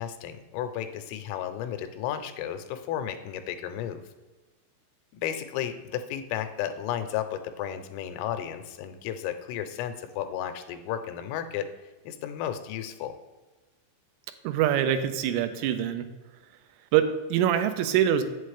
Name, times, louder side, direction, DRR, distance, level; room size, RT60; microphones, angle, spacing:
voice 1, 0.0-4.0 5.1-11.7 12.1-13.2, left 10 dB, 90° left, 9 dB, 3.2 m, -33 dB
voice 2, 14.4-16.1 16.9-18.2, right 10 dB, 85° right, 9 dB, 3.1 m, -24 dB
8.2 x 7.5 x 3.2 m, 1.2 s
omnidirectional pair, 5.8 m